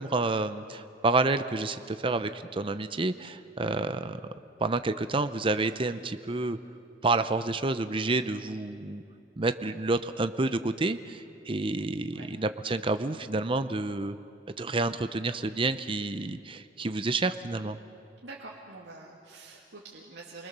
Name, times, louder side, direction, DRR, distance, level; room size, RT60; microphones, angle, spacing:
voice 1, 0.0-4.2 4.6-6.6 7.0-9.0 9.4-14.2 14.6-17.8, right 3 dB, 30° right, 10 dB, 0.7 m, -29 dB
voice 2, 18.2-20.5, right 3 dB, 80° right, -3 dB, 2.3 m, -46 dB
29.5 x 23.5 x 6.8 m, 2.7 s
head